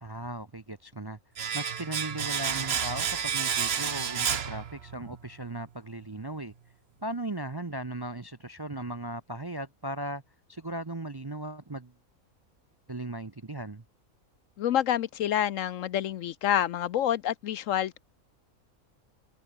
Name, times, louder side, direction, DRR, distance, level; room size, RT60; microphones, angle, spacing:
voice 1, 0.0-1.2 1.5-6.5 7.0-10.2 10.5-11.9 12.9-13.8, right 1 dB, 25° right, 0.6 m, -37 dB
Domestic sounds home sounds, 1.4-5.2 5.4-5.6, right 7 dB, 50° right, 1.1 m, -30 dB
voice 2, 14.6-18.0, left 11 dB, 70° left, 0.9 m, -28 dB
omnidirectional pair, 1.5 m